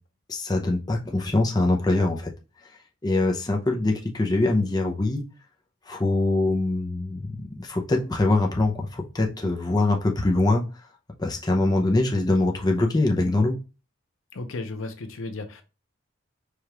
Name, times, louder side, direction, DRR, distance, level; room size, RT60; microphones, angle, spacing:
voice 1, 0.3-2.3 3.0-5.2 5.9-10.6 11.2-13.6, left 2 dB, 20° left, 1 dB, 0.5 m, -23 dB
voice 2, 14.3-15.6, left 2 dB, 80° left, 7 dB, 0.7 m, -34 dB
4.8 x 2.3 x 2.8 m, 0.31 s
head